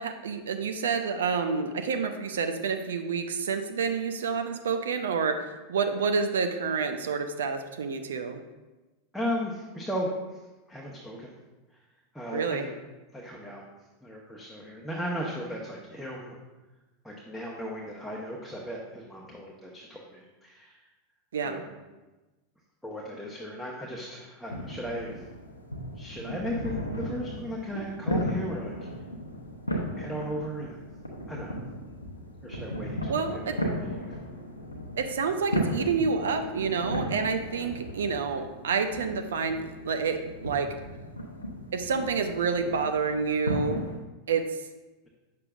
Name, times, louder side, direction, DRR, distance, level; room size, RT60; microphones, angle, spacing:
voice 1, 0.0-8.4 12.3-12.7 21.3-21.6 33.1-33.5 35.0-40.7 41.7-43.9 44.3-44.6, right 5 dB, 70° right, 7 dB, 0.6 m, -28 dB
voice 2, 9.1-10.4 10.7-11.3 12.1-12.7 13.1-13.6 14.0-16.4 17.0-20.8 21.4-21.7 22.8-25.3 26.0-28.8 30.0-30.9 31.3-31.6 32.4-33.0 33.3-33.6 33.9-34.1, equal, ahead, -4 dB, 1.1 m, -36 dB
sound 1, 24.4-44.0, equal, 85° left, 0.8 m, -35 dB
8.5 x 6.7 x 2.4 m, 1.1 s
figure-of-eight pair, 85°, 0 cm